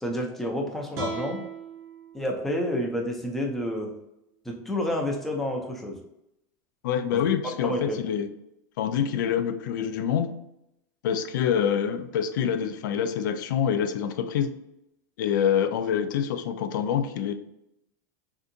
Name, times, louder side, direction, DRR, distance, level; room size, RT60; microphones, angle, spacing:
voice 1, 0.0-1.4 2.1-3.9 4.5-6.0 7.1-7.2 7.6-8.0, left 1 dB, 5° left, 0 dB, 0.4 m, -29 dB
sound 1, 0.9-4.1, right 3 dB, 30° right, 0.7 m, -40 dB
voice 2, 6.8-8.3 8.8-10.3 11.0-14.5 15.2-17.3, left 8 dB, 90° left, 10 dB, 0.4 m, -26 dB
3.6 x 2.7 x 2.5 m, 0.82 s
supercardioid pair, 155°, 10 cm